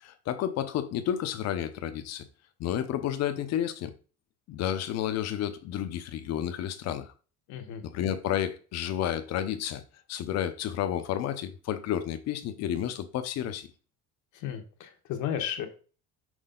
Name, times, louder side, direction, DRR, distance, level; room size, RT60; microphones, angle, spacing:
voice 1, 0.0-2.2 2.6-3.9 4.5-7.1 7.8-9.8 10.1-13.7, left 10 dB, 60° left, 0.8 m, -31 dB
voice 2, 7.5-7.8 14.4-15.7, left 9 dB, 75° left, 1.3 m, -33 dB
6.3 x 4.5 x 3.9 m
cardioid pair, 165°, 30 cm